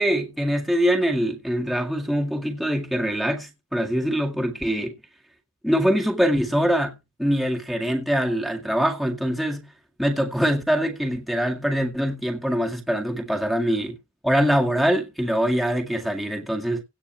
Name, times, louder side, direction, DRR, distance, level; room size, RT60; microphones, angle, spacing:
voice 1, 0.0-4.9 5.6-9.7 10.0-13.9 14.2-16.8, equal, ahead, 2.0 m, -23 dB
17.0 x 8.5 x 3.2 m
head